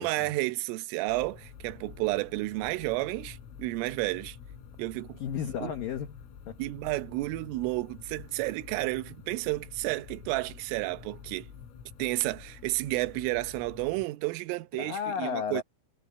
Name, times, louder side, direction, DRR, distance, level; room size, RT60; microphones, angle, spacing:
voice 1, 0.0-4.4 4.8-5.2 5.6-5.7 6.6-11.5 12.0-15.6, right 21 dB, 80° right, 3.5 m, -31 dB
sound 1, 1.1-14.0, left 7 dB, 85° left, 7.0 m, -48 dB
voice 2, 5.2-6.6 14.8-15.6, left 7 dB, 70° left, 2.2 m, -33 dB
omnidirectional pair, 5.9 m